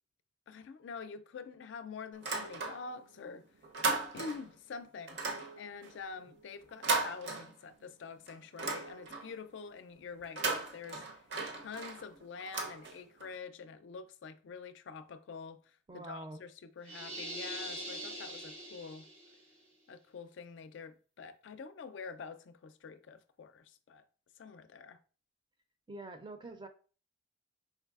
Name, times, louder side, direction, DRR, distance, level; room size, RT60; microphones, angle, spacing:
voice 1, 0.5-3.5 4.1-5.2 5.6-11.2 11.5-19.1 19.9-24.0 24.4-25.0, left 5 dB, 70° left, 0.4 m, -46 dB
sound 1, 2.1-3.1 3.4-4.6 5.1-7.9 8.3-9.4 10.2-13.3, right 3 dB, 65° right, 0.7 m, -37 dB
voice 2, 15.9-16.4 25.9-26.7, right 2 dB, 25° right, 0.4 m, -45 dB
sound 2, 16.8-19.4, right 1 dB, 90° right, 1.8 m, -43 dB
4.5 x 3.2 x 2.4 m
head